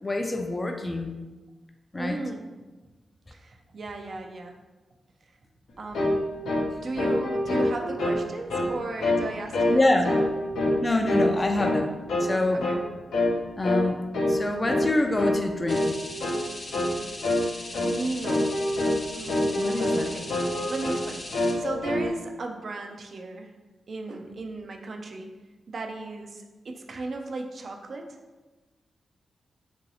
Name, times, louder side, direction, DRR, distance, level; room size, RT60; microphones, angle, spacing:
voice 1, 0.0-1.1 1.9-2.2 9.7-10.1 10.8-11.9 12.2-12.7 13.6-15.9 19.6-20.1, left 2 dB, 30° left, 4 dB, 0.4 m, -26 dB
voice 2, 1.9-2.5 3.3-4.6 5.8-6.1 6.8-10.3 12.5-12.8 17.8-18.5 19.1-21.2 21.6-23.5 23.9-25.3 25.7-28.2, right 3 dB, 65° right, 3 dB, 0.3 m, -36 dB
sound 1, 5.9-6.2 6.5-6.7 7.0-8.2 8.5-8.7 9.0-9.3 9.5-9.8 10.0-10.8 11.1-11.8 12.1-12.3 12.6-12.8 13.1-13.3 13.6-13.9 14.1-14.4 14.7-14.9 15.2-15.4 15.7-15.9 16.2-16.4 16.7-17.0 17.2-17.5 17.7-17.9 18.2-19.0 19.3-20.0 20.3-21.0 21.3-22.1, left 1 dB, 85° left, 0.5 m, -25 dB
sound 2, 15.7-21.5, left 1 dB, 45° left, 0.9 m, -40 dB
2.9 x 2.6 x 2.7 m, 1.2 s
supercardioid pair, 45°, 0 cm